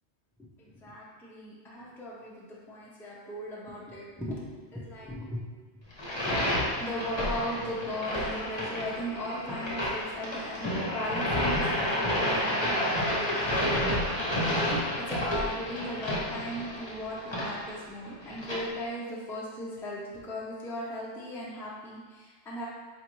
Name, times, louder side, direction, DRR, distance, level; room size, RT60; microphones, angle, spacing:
voice 1, 0.4-5.5 5.7-5.8 6.4-14.2 14.7-22.7, equal, 5° left, -6 dB, 0.4 m, -38 dB
sound 1, 5.9-18.6, left 1 dB, 25° left, 0.8 m, -30 dB
4.3 x 2.6 x 3.0 m, 1.4 s
omnidirectional pair, 1.2 m